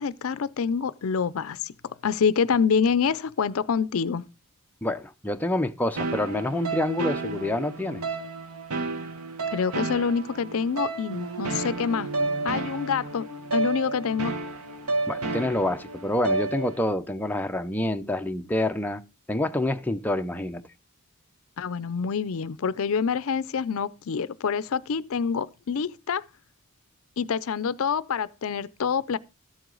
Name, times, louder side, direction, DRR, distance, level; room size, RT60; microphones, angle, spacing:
voice 1, 0.0-4.2 9.5-12.1 12.4-13.3 13.5-14.3 21.6-26.2 27.2-29.2, left 6 dB, 65° left, 0.4 m, -26 dB
voice 2, 4.8-8.0 15.1-19.0 19.3-20.6, left 1 dB, 10° left, 0.5 m, -27 dB
sound 1, 6.0-16.9, right 3 dB, 75° right, 1.1 m, -31 dB
13.0 x 7.8 x 3.8 m
head